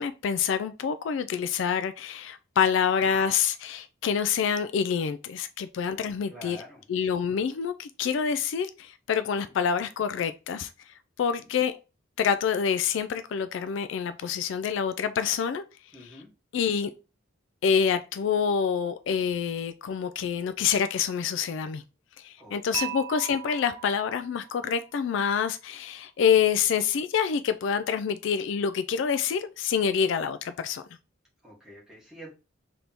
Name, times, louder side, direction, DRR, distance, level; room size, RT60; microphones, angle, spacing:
voice 1, 0.0-6.6 6.9-10.7 11.2-11.7 12.2-15.6 16.5-16.9 17.6-21.8 22.2-30.8, left 7 dB, 65° left, 0.3 m, -27 dB
voice 2, 6.3-6.8 9.4-9.5 11.3-11.5 15.9-16.3 22.4-22.8 31.4-32.3, right 1 dB, 5° right, 1.5 m, -47 dB
Dishes pots and pans / Chink clink, 22.7-24.9, right 12 dB, 75° right, 0.4 m, -38 dB
3.4 x 2.9 x 3.9 m
head